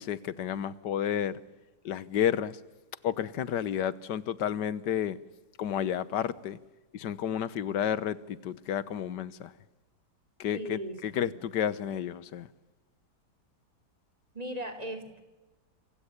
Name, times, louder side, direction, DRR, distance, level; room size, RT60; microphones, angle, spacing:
voice 1, 0.0-1.3 1.8-2.6 3.0-5.2 5.6-6.6 6.9-9.5 10.4-12.5, left 9 dB, 85° left, 1.6 m, -31 dB
voice 2, 10.5-11.4 14.3-15.2, right 1 dB, 20° right, 2.9 m, -38 dB
27.0 x 16.0 x 9.7 m
omnidirectional pair, 1.8 m